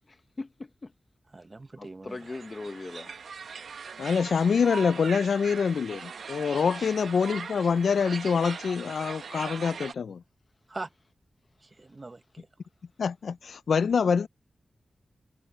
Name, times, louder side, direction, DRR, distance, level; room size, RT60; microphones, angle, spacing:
voice 1, 0.1-0.9 1.8-3.1, left 3 dB, 35° left, 1.0 m, -40 dB
voice 2, 1.3-2.2 6.8-7.0 10.7-10.9 11.6-12.5, right 2 dB, 30° right, 1.0 m, -42 dB
sound 1, 2.1-9.9, right 5 dB, 90° right, 1.1 m, -40 dB
voice 3, 4.0-10.2 13.0-14.3, left 6 dB, 85° left, 0.3 m, -25 dB
wide cardioid pair, 110°, 0 cm